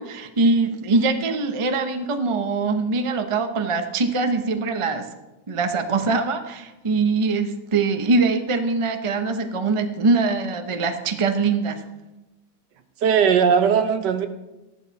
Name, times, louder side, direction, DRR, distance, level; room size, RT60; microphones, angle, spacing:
voice 1, 0.0-5.1 5.5-11.8, right 3 dB, 30° right, 6 dB, 0.5 m, -22 dB
voice 2, 13.0-14.3, right 7 dB, 75° right, 9 dB, 1.5 m, -18 dB
14.0 x 11.5 x 4.2 m, 1.0 s
omnidirectional pair, 1.9 m